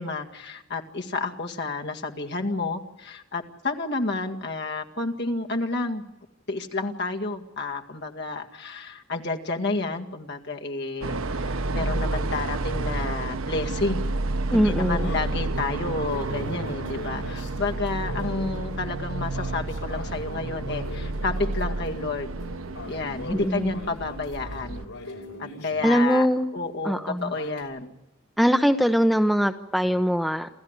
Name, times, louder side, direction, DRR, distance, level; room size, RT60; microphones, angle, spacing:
voice 1, 0.0-6.0 6.5-14.1 14.5-22.3 22.9-24.8 25.4-26.3 26.5-27.9, left 3 dB, 55° left, 3 dB, 2.1 m, -30 dB
sound 1, 11.0-24.9, right 2 dB, 75° right, 0.9 m, -30 dB
sound 2, 13.6-26.7 26.9-27.6, left 1 dB, 85° left, 5.8 m, -41 dB
voice 2, 14.5-15.1 23.3-23.7 25.8-26.5 26.8-27.3 28.4-30.5, equal, ahead, 8 dB, 0.7 m, -22 dB
28.5 x 14.0 x 8.2 m, 0.96 s
head